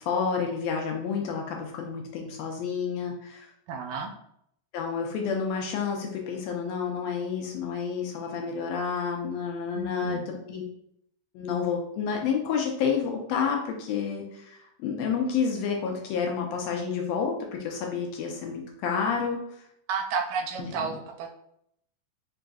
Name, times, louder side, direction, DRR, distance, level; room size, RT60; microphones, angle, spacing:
voice 1, 0.0-3.5 4.7-10.6 11.3-19.6 20.6-20.9, left 6 dB, 75° left, 1 dB, 1.7 m, -30 dB
voice 2, 3.7-4.1 9.7-10.3 19.9-21.3, right 5 dB, 80° right, 4 dB, 1.9 m, -31 dB
4.7 x 3.8 x 2.3 m, 0.73 s
omnidirectional pair, 3.3 m